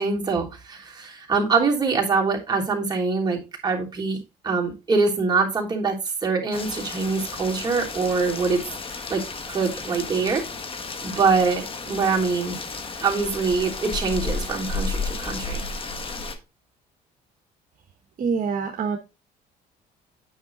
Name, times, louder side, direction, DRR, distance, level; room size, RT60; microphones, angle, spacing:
voice 1, 0.0-4.2 4.4-8.6 9.1-10.5 11.0-12.6 13.0-15.6, right 4 dB, 25° right, 3.2 m, -24 dB
Rain, 6.5-16.4, left 4 dB, 30° left, 1.5 m, -33 dB
voice 2, 18.2-19.0, right 5 dB, 50° right, 1.2 m, -25 dB
9.4 x 5.7 x 3.9 m
cardioid pair, 110°, 17 cm